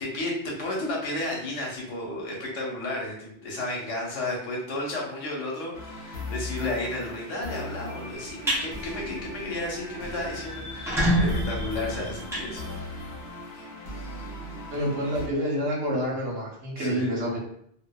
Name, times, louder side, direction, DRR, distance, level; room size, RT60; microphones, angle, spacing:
voice 1, 0.0-13.1 16.8-17.1, left 2 dB, 85° left, -2 dB, 1.1 m, -33 dB
sound 1, 5.7-15.3, left 2 dB, 65° left, 0.9 m, -38 dB
sound 2, 8.2-8.6 9.1-9.3 9.7-9.8 10.0-10.1 10.6-13.2, equal, 5° right, 0.4 m, -27 dB
voice 2, 14.7-17.4, equal, 75° right, -3 dB, 1.1 m, -28 dB
2.8 x 2.2 x 2.2 m, 0.68 s
omnidirectional pair, 1.2 m